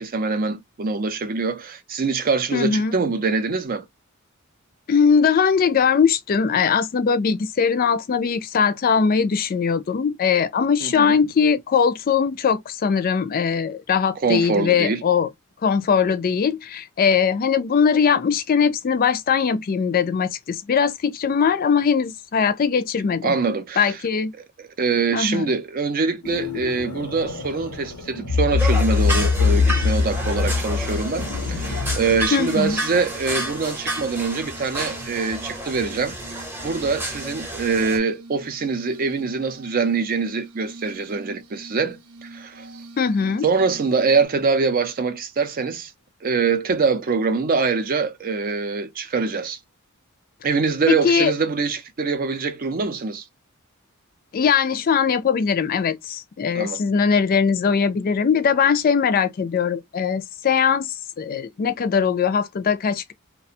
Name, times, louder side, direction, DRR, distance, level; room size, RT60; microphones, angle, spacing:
voice 1, 0.0-3.9 10.8-11.2 14.2-15.0 23.2-24.0 24.6-36.4 36.6-42.6 43.4-45.9 46.2-49.6 50.4-53.2 56.5-56.8, right 4 dB, 40° right, 0.5 m, -24 dB
voice 2, 2.5-3.0 4.9-15.3 15.6-23.4 23.8-24.3 25.1-25.5 32.3-32.8 43.0-43.5 50.9-51.3 54.3-63.1, left 6 dB, 40° left, 0.3 m, -20 dB
sound 1, 26.2-32.3, left 5 dB, 80° left, 0.7 m, -23 dB
Glass, 28.5-44.3, right 2 dB, 90° right, 0.6 m, -43 dB
sound 2, 28.6-38.0, right 1 dB, 10° right, 0.7 m, -31 dB
2.4 x 2.1 x 2.6 m
head